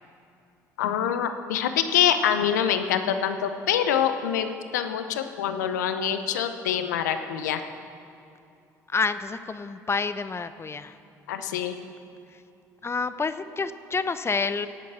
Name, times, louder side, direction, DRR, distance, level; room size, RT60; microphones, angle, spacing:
voice 1, 0.8-7.6 11.3-11.8, left 9 dB, 85° left, 9 dB, 0.8 m, -25 dB
voice 2, 8.9-11.0 12.3-12.4 12.8-14.7, left 4 dB, 30° left, 12 dB, 0.9 m, -28 dB
17.0 x 8.5 x 7.3 m, 2.6 s
hypercardioid pair, 55°, 9 cm